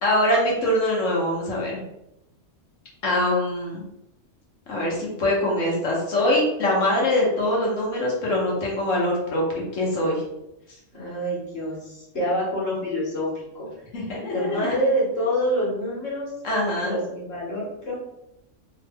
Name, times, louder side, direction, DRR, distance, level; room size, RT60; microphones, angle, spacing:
voice 1, 0.0-1.8 3.0-3.8 4.7-9.4 9.7-10.2 13.9-14.7 16.4-16.9, left 1 dB, 85° left, -3 dB, 1.4 m, -23 dB
voice 2, 10.9-13.7 14.3-16.3 16.8-17.9, equal, 55° left, -6 dB, 1.5 m, -26 dB
3.1 x 2.2 x 3.4 m, 0.84 s
omnidirectional pair, 1.3 m